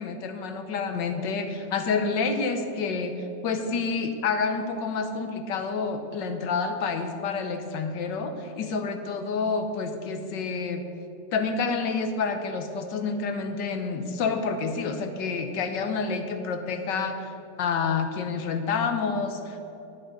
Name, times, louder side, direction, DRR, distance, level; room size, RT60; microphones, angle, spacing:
voice 1, 0.0-3.1 3.4-10.8 11.3-17.3 17.6-19.6, left 4 dB, 75° left, 7 dB, 1.6 m, -28 dB
10.5 x 9.1 x 5.4 m, 2.9 s
omnidirectional pair, 2.0 m